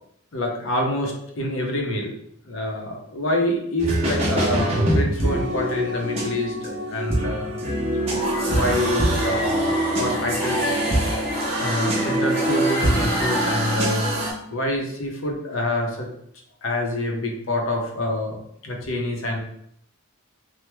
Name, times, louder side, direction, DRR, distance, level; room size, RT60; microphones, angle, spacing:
voice 1, 0.3-2.2 2.5-7.6 8.4-10.7 11.6-14.1 14.5-16.1 16.6-19.4, left 1 dB, 70° left, 0 dB, 0.7 m, -26 dB
sound 1, 3.8-14.3, right 1 dB, 30° right, 0.7 m, -25 dB
sound 2, 8.0-13.8, right 1 dB, 5° left, 0.7 m, -26 dB
3.0 x 2.0 x 3.3 m, 0.71 s
head